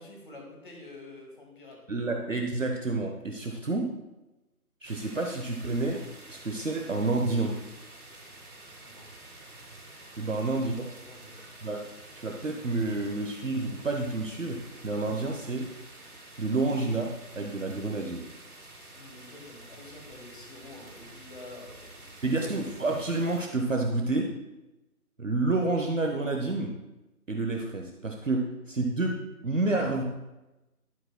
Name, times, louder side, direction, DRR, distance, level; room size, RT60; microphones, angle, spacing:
voice 1, 0.0-1.8 8.8-9.1 10.2-10.4 10.8-11.4 18.9-22.4, left 2 dB, 35° left, 0 dB, 2.0 m, -48 dB
voice 2, 1.9-3.9 4.8-6.0 6.3-7.5 10.2-10.8 11.6-11.8 12.2-15.7 16.4-18.2 22.2-24.3 25.2-26.7 27.3-29.2 29.4-30.0, right 2 dB, 55° right, 2 dB, 1.0 m, -29 dB
sound 1, 4.8-23.5, right 2 dB, 70° right, 2.9 m, -49 dB
11.0 x 10.5 x 2.2 m, 1.0 s
figure-of-eight pair, 165°, 46 cm